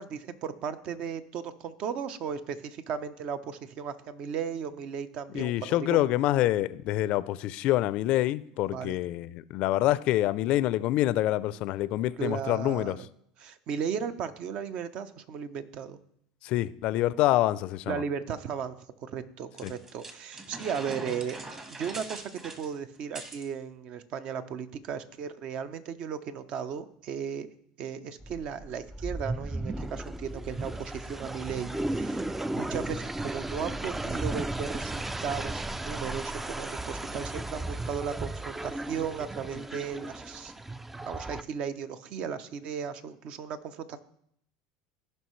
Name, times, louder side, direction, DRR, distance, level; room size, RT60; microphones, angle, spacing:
voice 1, 0.0-6.0 8.7-9.0 12.2-13.1 13.4-16.0 17.9-18.7 19.0-21.4 21.7-27.5 27.8-32.2 32.5-40.5 41.1-44.0, right 7 dB, 50° right, 0.7 m, -36 dB
voice 2, 5.3-13.0 16.4-18.0 19.6-19.7, left 15 dB, 55° left, 0.4 m, -26 dB
sound 1, 19.6-23.5, right 2 dB, 25° right, 1.4 m, -42 dB
sound 2, 28.2-41.4, right 2 dB, 10° right, 0.3 m, -35 dB
15.0 x 5.6 x 3.2 m
hypercardioid pair, 85°, 2 cm